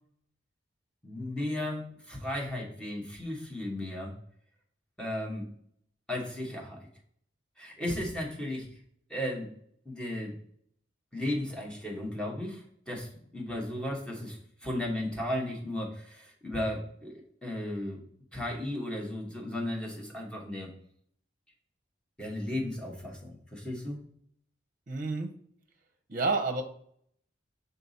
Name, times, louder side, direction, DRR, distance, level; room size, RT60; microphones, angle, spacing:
voice 1, 1.0-4.1 5.0-5.5 6.1-6.9 7.6-8.7 9.1-9.5 9.8-10.4 11.1-18.0 18.3-20.7 22.2-24.0, left 1 dB, 5° left, -2 dB, 1.3 m, -35 dB
voice 2, 24.9-25.3 26.1-26.6, right 3 dB, 45° right, 4 dB, 0.8 m, -29 dB
5.8 x 4.1 x 4.1 m, 0.64 s
head